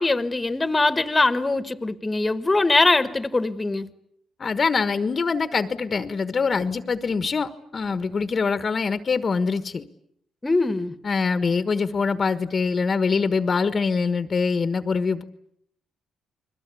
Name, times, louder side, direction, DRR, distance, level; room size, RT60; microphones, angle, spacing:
voice 1, 0.0-3.9 10.4-10.9, left 2 dB, 20° left, 1.5 m, -22 dB
voice 2, 4.4-9.8 11.0-15.2, left 5 dB, 40° left, 1.3 m, -24 dB
29.5 x 21.5 x 8.4 m
cardioid pair, 90°, 0 cm